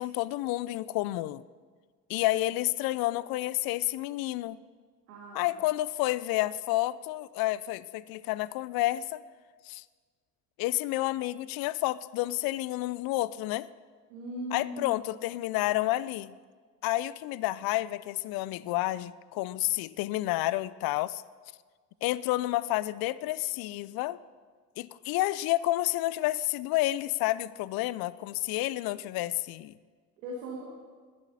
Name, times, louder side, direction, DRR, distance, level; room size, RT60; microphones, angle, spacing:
voice 1, 0.0-1.4 2.1-4.6 5.3-9.2 9.7-9.8 10.6-13.7 14.5-16.3 16.8-21.2 22.0-24.2 24.8-29.7, left 17 dB, 50° left, 19 dB, 0.5 m, -30 dB
voice 2, 5.1-5.5 14.1-15.2 30.2-30.6, equal, 75° right, -3 dB, 2.0 m, -39 dB
20.5 x 12.0 x 2.8 m, 1.5 s
figure-of-eight pair, 50°, 49 cm